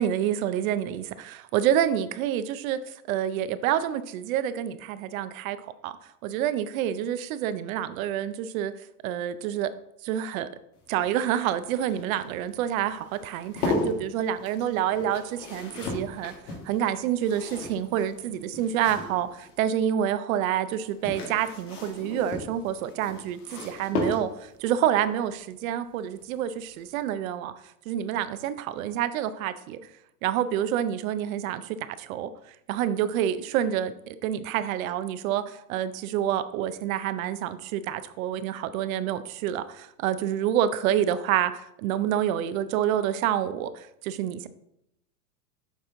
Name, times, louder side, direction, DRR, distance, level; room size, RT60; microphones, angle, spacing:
voice 1, 0.0-5.9 6.2-8.7 9.0-9.7 10.0-10.5 10.9-16.3 16.6-27.5 27.9-29.8 30.2-32.3 32.7-44.5, right 10 dB, 65° right, 13 dB, 0.6 m, -28 dB
sound 1, 10.8-19.6 20.7-24.6 26.2-26.6 26.8-26.9, left 2 dB, 85° left, 1.9 m, -35 dB
7.2 x 4.2 x 3.7 m, 0.80 s
supercardioid pair, 120°, 45 cm